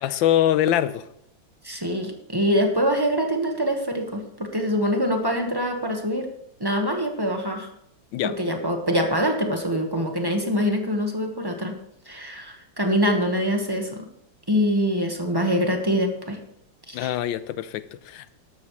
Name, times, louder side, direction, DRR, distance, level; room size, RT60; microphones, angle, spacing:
voice 1, 0.0-1.1 8.1-8.3 16.9-18.3, left 11 dB, 85° left, 15 dB, 1.3 m, -23 dB
voice 2, 1.6-6.3 6.6-7.7 8.2-11.7 12.0-14.0 14.5-16.4 16.9-17.1, equal, 15° right, 3 dB, 1.2 m, -24 dB
13.0 x 12.5 x 3.2 m, 0.74 s
omnidirectional pair, 2.1 m